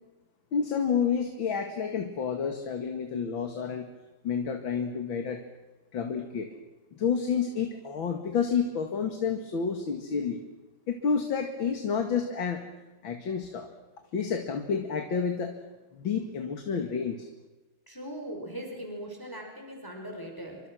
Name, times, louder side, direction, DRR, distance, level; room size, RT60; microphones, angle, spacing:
voice 1, 0.5-3.9 4.2-5.4 5.9-6.5 6.9-10.4 10.9-12.6 13.0-13.7 14.1-15.6 15.9-17.3, left 6 dB, 70° left, 5 dB, 2.8 m, -29 dB
voice 2, 17.9-20.7, right 1 dB, 10° left, 2 dB, 5.3 m, -40 dB
29.0 x 25.5 x 6.3 m, 1.1 s
omnidirectional pair, 2.2 m